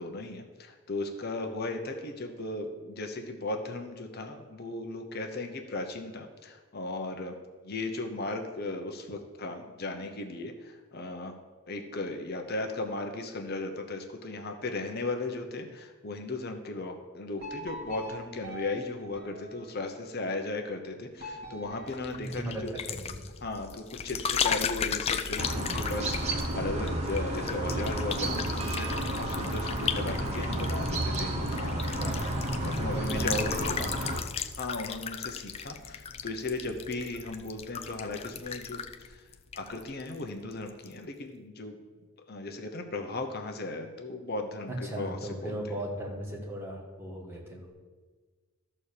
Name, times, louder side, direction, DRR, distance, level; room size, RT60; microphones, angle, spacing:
voice 1, 0.0-7.4 7.6-11.3 11.7-22.7 23.4-32.0 32.6-33.8 34.6-39.2 39.5-41.8 42.3-45.6, left 2 dB, 45° left, 4 dB, 0.9 m, -36 dB
sound 1, 17.4-20.1 21.2-22.9, equal, 45° right, 2.2 m, -44 dB
sound 2, 21.9-40.2 40.5-40.9, left 7 dB, 30° left, 0.3 m, -36 dB
voice 2, 22.1-22.6 22.9-23.2 31.8-32.3 32.9-33.9 44.7-47.7, right 1 dB, 10° right, -3 dB, 1.7 m, -37 dB
sound 3, 25.4-34.2, right 1 dB, 30° right, 1.0 m, -31 dB
13.0 x 4.3 x 6.7 m, 1.4 s
head